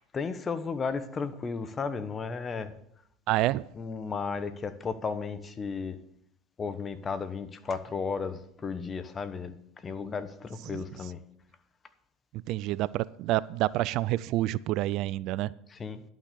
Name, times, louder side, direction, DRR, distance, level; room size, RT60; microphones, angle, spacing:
voice 1, 0.1-2.7 3.7-6.0 6.6-11.2 15.7-16.0, left 5 dB, 30° left, 1.0 m, -34 dB
voice 2, 3.3-3.6 10.7-10.9 12.5-15.5, right 16 dB, 60° right, 0.3 m, -28 dB
11.5 x 6.3 x 6.8 m
hypercardioid pair, 85°, 0 cm